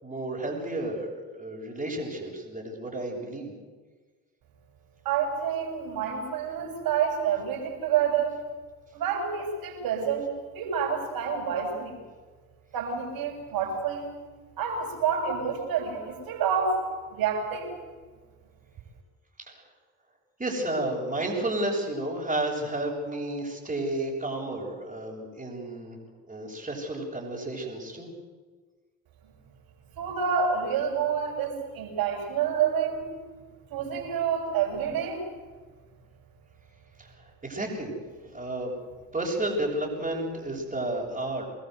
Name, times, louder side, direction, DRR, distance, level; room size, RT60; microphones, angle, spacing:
voice 1, 0.0-3.5 19.5-19.6 20.4-26.0 26.3-28.1 37.0-37.9 38.2-38.7 39.1-41.4, right 1 dB, 15° right, -5 dB, 7.3 m, -32 dB
voice 2, 5.0-8.4 8.9-12.0 12.7-14.1 14.6-16.8 17.1-17.7 30.0-33.1 33.7-35.2, right 7 dB, 55° right, 2 dB, 7.3 m, -28 dB
25.5 x 20.5 x 8.1 m, 1.4 s
figure-of-eight pair, 50°, 41 cm